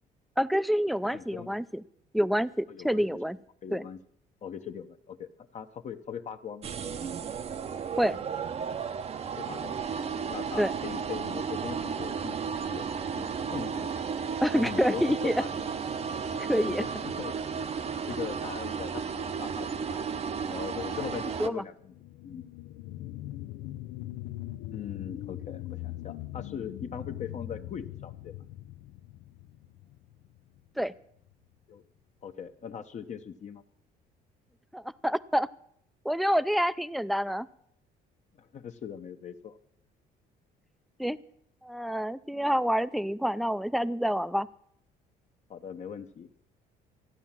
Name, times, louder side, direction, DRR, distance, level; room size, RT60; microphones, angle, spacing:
voice 1, 0.4-1.6 2.1-3.4 3.7-3.8 8.0-8.2 10.6-10.7 14.4-15.3 16.5-16.8 21.4-21.6 30.8-30.9 34.7-35.5 36.0-37.5 41.0-41.2 41.6-44.5, equal, ahead, 16 dB, 0.4 m, -27 dB
voice 2, 1.1-1.5 2.7-3.2 3.6-4.0 4.4-6.7 9.4-9.8 10.3-14.0 14.6-15.5 16.5-17.7 18.1-20.1 20.5-21.9 22.2-22.4 24.7-28.3 31.7-31.8 32.2-33.6 38.4-39.6 45.5-46.4, left 7 dB, 45° left, 7 dB, 0.9 m, -40 dB
sound 1, 6.6-21.5, right 6 dB, 35° right, 0.7 m, -34 dB
sound 2, 21.8-30.9 31.3-31.4, left 15 dB, 85° left, 0.5 m, -41 dB
14.5 x 9.5 x 7.4 m, 0.71 s
cardioid pair, 110°, 17 cm